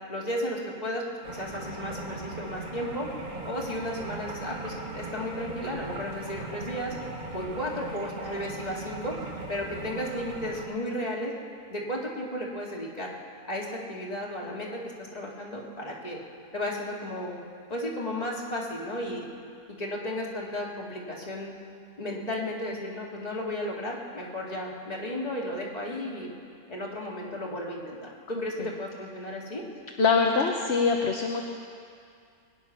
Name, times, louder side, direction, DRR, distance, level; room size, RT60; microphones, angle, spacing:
voice 1, 0.1-1.0 1.3-3.1 3.4-6.9 7.3-9.2 9.5-11.3 11.7-13.1 13.5-16.2 16.5-17.4 17.7-19.3 19.8-21.5 22.0-26.3 26.7-29.6, left 1 dB, 25° left, -3 dB, 2.4 m, -34 dB
sound 1, 1.2-10.6, right 2 dB, 35° right, 1.8 m, -38 dB
voice 2, 30.0-31.4, left 4 dB, 50° left, 1 dB, 1.2 m, -24 dB
22.0 x 9.9 x 5.9 m, 2.3 s
omnidirectional pair, 1.6 m